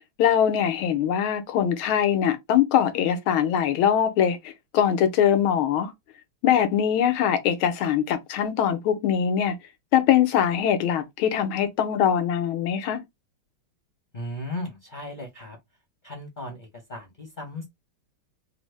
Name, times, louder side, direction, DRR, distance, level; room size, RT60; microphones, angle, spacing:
voice 1, 0.2-5.9 6.4-9.6 9.9-13.0, left 9 dB, 90° left, 1.6 m, -22 dB
voice 2, 14.1-15.6 16.0-17.7, left 1 dB, 45° left, 0.6 m, -36 dB
4.0 x 2.0 x 3.1 m
omnidirectional pair, 2.3 m